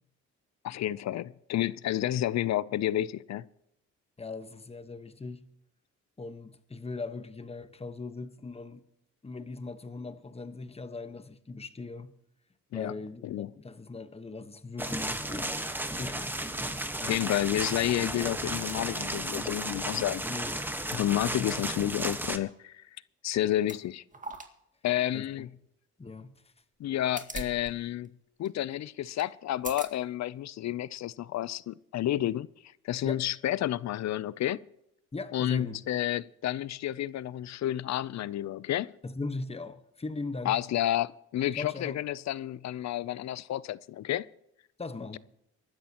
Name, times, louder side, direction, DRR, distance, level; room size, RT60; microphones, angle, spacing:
voice 1, 0.6-3.5 12.7-12.9 13.2-13.5 17.0-20.2 20.9-22.8 23.2-24.0 24.8-25.5 26.8-28.1 28.4-32.5 32.8-34.6 35.3-38.9 40.4-44.3, left 13 dB, 65° left, 0.6 m, -30 dB
voice 2, 4.2-5.4 6.2-8.8 9.2-12.1 12.7-15.5 16.0-16.4 20.3-20.7 21.5-21.6 25.1-25.5 26.0-26.4 33.0-33.2 35.1-35.8 39.0-40.6 41.6-42.0 44.8-45.2, left 3 dB, 20° left, 1.3 m, -39 dB
sound 1, 14.8-22.4, right 1 dB, 5° right, 1.4 m, -34 dB
sound 2, 16.6-17.8 18.3-18.4 18.7-18.8 19.4-19.7 20.0-20.1 22.8-23.0 23.6-23.8 24.1-24.5 24.9-25.0 26.8-27.7 28.0-28.1 28.4-28.6 29.2-29.3 29.6-29.9 30.6-30.7, right 3 dB, 25° right, 2.0 m, -43 dB
23.5 x 12.5 x 3.0 m
cardioid pair, 90°, 30 cm